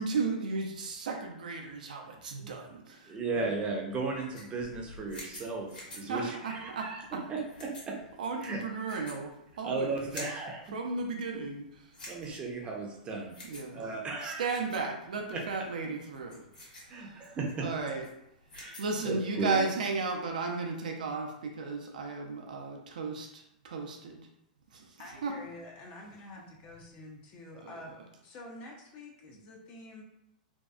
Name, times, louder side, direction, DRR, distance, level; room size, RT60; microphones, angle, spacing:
voice 1, 0.0-3.6 5.3-5.4 5.9-7.2 8.2-9.3 9.6-10.1 10.7-11.9 13.4-13.8 14.2-16.4 16.8-18.0 18.8-24.3 24.7-24.9 25.2-25.4 27.6-27.8, right 4 dB, 70° right, 2 dB, 0.5 m, -35 dB
voice 2, 3.1-8.0 8.4-8.6 9.6-10.6 12.1-13.4 13.7-14.6 15.3-15.4 16.9-17.7 18.5-18.8 19.0-19.6, right 3 dB, 25° right, 0 dB, 0.5 m, -35 dB
sound 1, 3.9-19.0, left 1 dB, 75° left, 1.2 m, -50 dB
voice 3, 25.0-27.9 28.2-30.0, left 2 dB, 40° left, 0 dB, 0.5 m, -48 dB
2.6 x 2.2 x 2.2 m, 0.82 s
hypercardioid pair, 110°, 4 cm